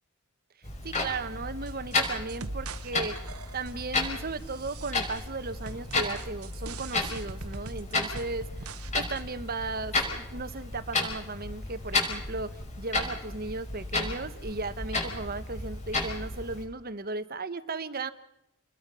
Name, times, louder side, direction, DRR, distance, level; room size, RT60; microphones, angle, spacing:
Clock, 0.6-16.6, left 3 dB, 30° left, 5.5 m, -33 dB
voice 1, 0.8-3.2 3.5-12.5 12.8-18.1, right 3 dB, 40° right, 12 dB, 1.2 m, -36 dB
sound 1, 1.7-2.9 3.2-3.9 4.4-5.3 5.7-8.9 9.2-9.3, right 4 dB, 80° right, 1.2 m, -43 dB
29.5 x 21.5 x 5.6 m, 0.80 s
head